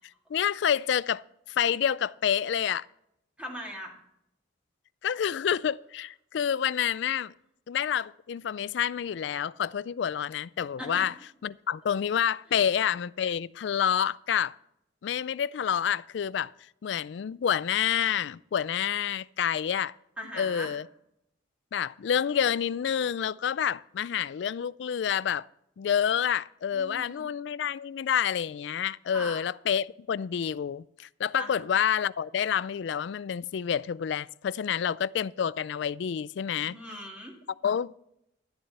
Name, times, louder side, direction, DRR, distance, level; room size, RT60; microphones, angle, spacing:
voice 1, 0.3-1.2 1.6-2.9 5.0-7.3 7.7-11.1 11.4-14.5 15.0-16.5 16.8-19.9 20.4-20.9 21.7-25.5 25.8-36.7 37.6-37.9, left 8 dB, 65° left, 0.3 m, -28 dB
voice 2, 3.4-3.9 10.8-11.1 12.5-12.6 20.2-20.7 26.7-27.3 29.1-29.4 31.4-31.6 36.6-37.4, equal, 5° right, 2.3 m, -39 dB
11.5 x 11.0 x 4.2 m
head